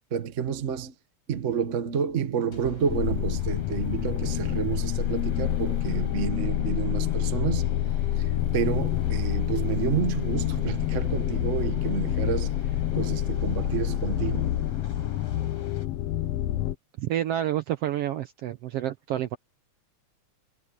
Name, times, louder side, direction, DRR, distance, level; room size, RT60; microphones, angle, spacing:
voice 1, 0.1-0.9 1.3-7.6 8.2-12.5 12.9-14.5, right 7 dB, 55° right, 0.8 m, -29 dB
sound 1, 2.5-6.7, left 2 dB, 25° left, 1.8 m, -48 dB
sound 2, 2.6-15.9, left 3 dB, 55° left, 7.1 m, -51 dB
sound 3, 2.9-16.7, left 12 dB, 70° left, 1.6 m, -27 dB
voice 2, 17.0-19.4, right 12 dB, 75° right, 1.4 m, -29 dB
omnidirectional pair, 3.4 m